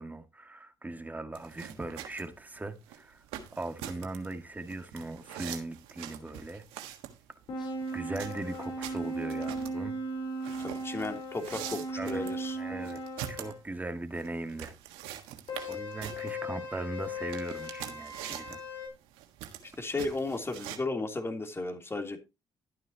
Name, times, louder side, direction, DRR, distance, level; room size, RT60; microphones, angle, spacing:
voice 1, 0.0-3.2 3.5-6.6 7.9-10.0 12.0-13.0 13.3-14.7 15.7-18.6, right 2 dB, 20° right, 1.9 m, -39 dB
sound 1, 1.3-20.8, right 11 dB, 85° right, 1.5 m, -45 dB
sound 2, 7.5-13.6 15.5-18.9, right 1 dB, 60° left, 4.0 m, -37 dB
voice 2, 10.6-12.6 19.8-22.2, left 2 dB, 25° left, 3.1 m, -34 dB
12.5 x 9.4 x 2.9 m
supercardioid pair, 60°, 9 cm